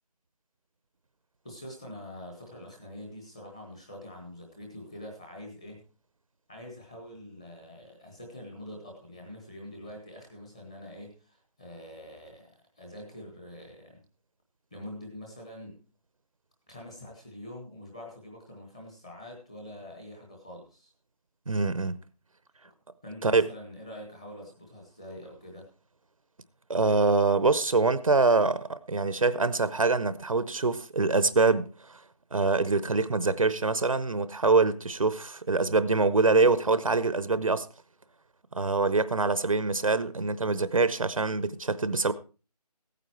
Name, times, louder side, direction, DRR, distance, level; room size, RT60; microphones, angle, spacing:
voice 1, 1.4-5.8 6.5-12.5 12.8-14.0 14.7-15.8 16.7-20.9 22.6-22.7 23.0-25.7, left 1 dB, 10° left, 1.2 m, -45 dB
voice 2, 21.5-22.0 23.2-23.5 26.7-32.0 32.3-37.7 38.5-42.1, right 3 dB, 55° right, 0.8 m, -24 dB
16.0 x 9.2 x 4.5 m
figure-of-eight pair, 180°, 21 cm